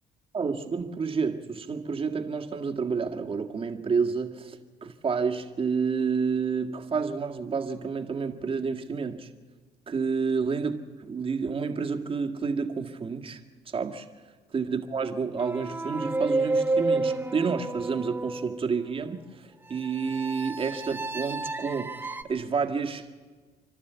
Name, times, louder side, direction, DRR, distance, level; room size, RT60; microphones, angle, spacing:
voice 1, 0.3-9.3 9.9-13.4 13.7-14.1 14.5-23.2, right 5 dB, 30° right, 4 dB, 1.8 m, -29 dB
sound 1, 15.4-18.7 19.8-22.2, right 3 dB, 10° right, 1.1 m, -30 dB
30.0 x 12.0 x 8.1 m, 1.4 s
cardioid pair, 110°, 17 cm